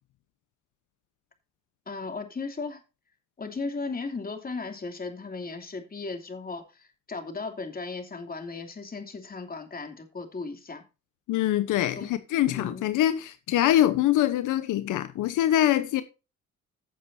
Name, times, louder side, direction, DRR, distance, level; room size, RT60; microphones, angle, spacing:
voice 1, 1.9-2.8 3.4-10.8 12.0-12.1 12.5-12.9, left 4 dB, 30° left, 2.9 m, -36 dB
voice 2, 11.3-16.0, left 12 dB, 85° left, 1.0 m, -24 dB
16.0 x 7.3 x 2.7 m
cardioid pair, 90°, 30 cm